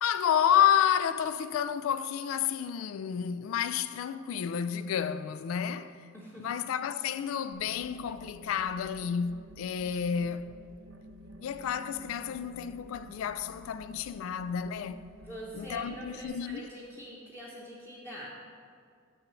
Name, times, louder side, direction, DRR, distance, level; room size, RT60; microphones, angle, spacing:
voice 1, 0.0-6.0 6.4-10.5 11.4-15.0 15.5-16.6, left 8 dB, 85° left, 0.3 m, -30 dB
voice 2, 6.1-6.5 15.2-18.3, right 1 dB, 10° left, 0.9 m, -44 dB
sound 1, 7.5-16.3, equal, 85° right, 0.8 m, -51 dB
6.1 x 6.0 x 6.9 m
head